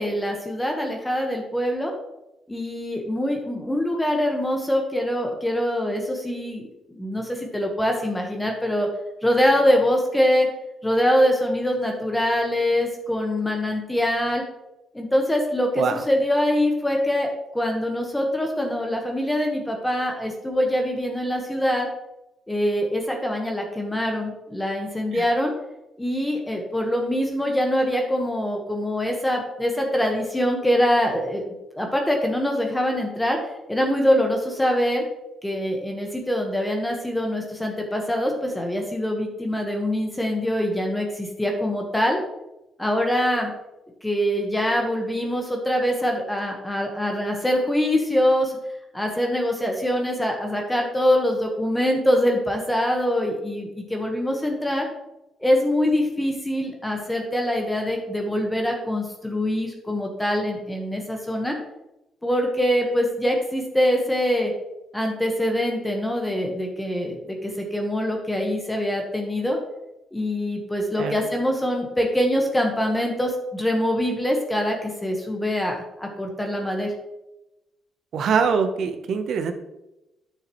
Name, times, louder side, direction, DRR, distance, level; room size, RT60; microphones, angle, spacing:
voice 1, 0.0-1.9 2.5-8.9 9.2-10.5 10.8-14.4 14.9-17.3 17.5-21.9 22.5-25.5 26.0-31.4 31.7-33.4 33.7-35.0 35.4-42.2 42.8-43.5 44.0-48.6 48.9-54.9 55.4-61.6 62.2-64.5 64.9-69.6 70.1-76.9, equal, 10° left, 1 dB, 1.3 m, -24 dB
voice 2, 78.1-79.5, right 6 dB, 65° right, 8 dB, 0.8 m, -23 dB
9.3 x 6.6 x 3.1 m, 0.95 s
cardioid pair, 90°, 0 cm